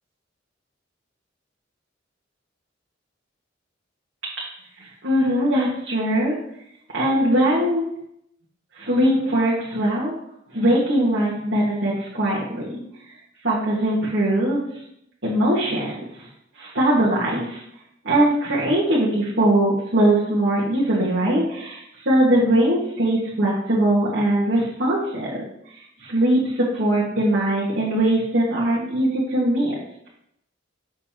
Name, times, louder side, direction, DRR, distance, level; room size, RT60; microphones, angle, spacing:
voice 1, 4.8-6.4 6.9-7.8 8.8-10.1 10.5-12.8 13.4-14.6 15.2-16.3 16.6-17.6 18.0-25.4 26.0-29.7, right 1 dB, 75° right, -8 dB, 1.8 m, -21 dB
6.8 x 6.6 x 3.0 m, 0.77 s
head